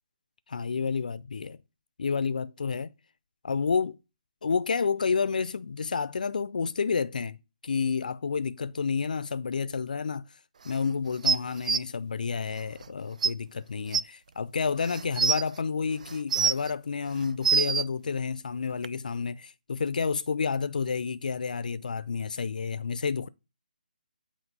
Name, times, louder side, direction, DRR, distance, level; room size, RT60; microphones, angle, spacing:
voice 1, 0.5-1.6 2.0-2.9 3.4-4.0 4.4-7.4 7.6-10.3 10.6-23.3, left 5 dB, 65° left, 0.5 m, -30 dB
sound 1, 11.2-11.8 12.8-12.9 13.2-13.3 13.9-14.0 14.8-15.4 16.1-16.7 17.2-17.8 18.8-18.9, right 6 dB, 55° right, 0.4 m, -24 dB
8.2 x 3.0 x 5.4 m
figure-of-eight pair, 150°, 5 cm